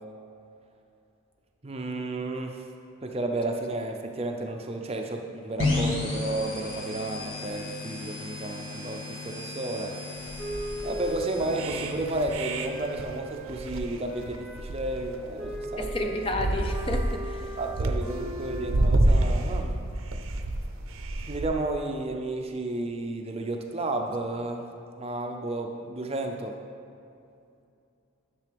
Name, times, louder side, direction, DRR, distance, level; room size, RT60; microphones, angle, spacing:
voice 1, 1.6-2.6 3.0-10.0 10.8-16.1 17.6-19.8 21.3-24.7 25.0-26.6, right 2 dB, 30° right, 3 dB, 0.5 m, -32 dB
sound 1, 5.6-13.2, left 3 dB, 65° left, 1.8 m, -34 dB
sound 2, 10.2-21.5, right 1 dB, 70° right, 0.6 m, -29 dB
Wind instrument woodwind instrument, 10.4-13.7 14.1-18.7, right 1 dB, ahead, 1.1 m, -39 dB
voice 2, 15.8-17.6, left 2 dB, 25° left, 4 dB, 0.5 m, -31 dB
10.5 x 6.8 x 3.4 m, 2.6 s
head